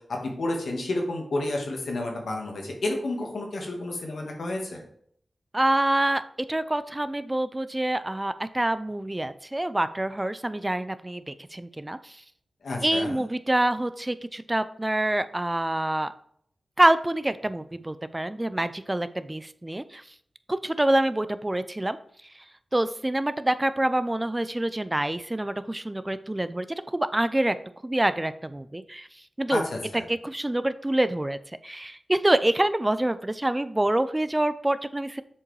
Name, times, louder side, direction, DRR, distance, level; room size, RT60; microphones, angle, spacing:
voice 1, 0.1-4.8 12.6-13.2 29.5-30.0, left 2 dB, 85° left, 1 dB, 1.6 m, -30 dB
voice 2, 5.5-6.2 6.5-12.2 12.8-16.1 16.8-20.0 20.5-22.0 22.7-27.6 27.8-29.1 29.4-29.6 30.1-31.4 31.6-35.2, right 1 dB, 20° right, 13 dB, 0.4 m, -26 dB
7.3 x 4.8 x 3.2 m, 0.63 s
cardioid pair, 50°, 0 cm